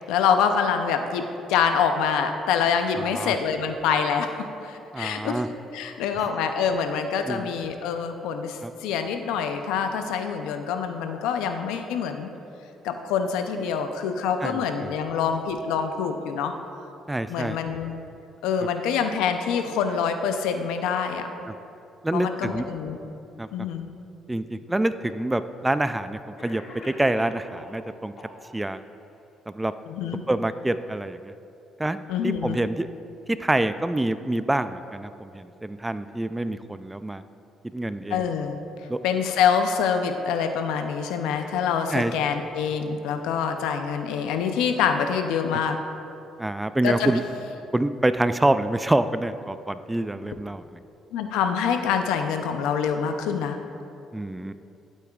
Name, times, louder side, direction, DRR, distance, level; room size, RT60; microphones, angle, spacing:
voice 1, 0.1-5.4 5.7-12.3 12.8-16.5 17.3-18.0 18.4-21.3 22.1-23.0 23.5-23.9 29.9-30.2 32.1-32.6 38.1-38.6 39.0-45.8 46.8-47.1 51.1-53.6, left 7 dB, 90° left, 7 dB, 0.5 m, -25 dB
voice 2, 3.0-3.3 4.9-5.5 7.3-7.5 8.6-8.7 14.4-14.9 17.1-17.6 21.5-21.6 22.0-22.6 23.4-23.5 24.3-28.1 28.5-28.8 29.5-29.7 30.3-31.3 31.8-32.9 33.3-37.2 37.7-38.2 38.9-39.0 41.9-42.1 46.4-47.2 47.7-50.8 54.1-54.5, right 1 dB, 10° right, 12 dB, 0.3 m, -26 dB
Cough, 24.7-24.8 25.8-25.9 26.4-27.8 28.2-28.8, left 2 dB, 65° left, 1.8 m, -43 dB
12.0 x 8.4 x 2.4 m, 2.8 s
cardioid pair, 80°, 0 cm